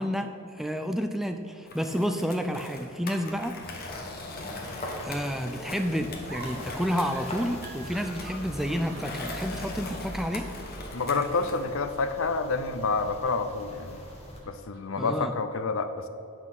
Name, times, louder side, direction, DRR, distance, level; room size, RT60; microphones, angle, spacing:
voice 1, 0.0-3.7 4.8-10.5 15.0-15.3, equal, ahead, 6 dB, 0.3 m, -30 dB
Skateboard, 1.7-11.7, left 3 dB, 45° left, 1.2 m, -41 dB
sound 1, 3.6-14.4, left 1 dB, 30° left, 1.5 m, -42 dB
sound 2, 6.3-9.2 9.5-9.8 10.1-10.3 11.2-12.3 12.7-15.1, right 2 dB, 60° right, 1.9 m, -47 dB
voice 2, 10.9-14.0 14.5-16.1, left 4 dB, 65° left, 10 dB, 0.6 m, -28 dB
8.9 x 6.1 x 6.0 m, 2.7 s
head